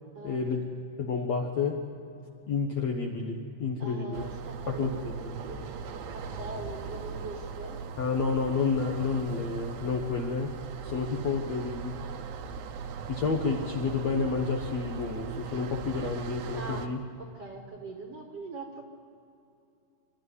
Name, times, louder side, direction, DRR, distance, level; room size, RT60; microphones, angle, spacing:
voice 1, 0.2-0.6 1.0-1.8 2.5-4.3 4.7-5.4 8.0-10.6 10.8-12.0 13.1-17.0, left 4 dB, 60° left, 1 dB, 1.8 m, -30 dB
voice 2, 3.8-5.1 5.4-7.8 16.6-16.8 17.2-18.8, right 2 dB, 50° right, 2 dB, 2.1 m, -42 dB
sound 1, 4.1-16.9, right 5 dB, 75° right, 2.8 m, -39 dB
26.5 x 13.0 x 9.6 m, 2.7 s
omnidirectional pair, 4.7 m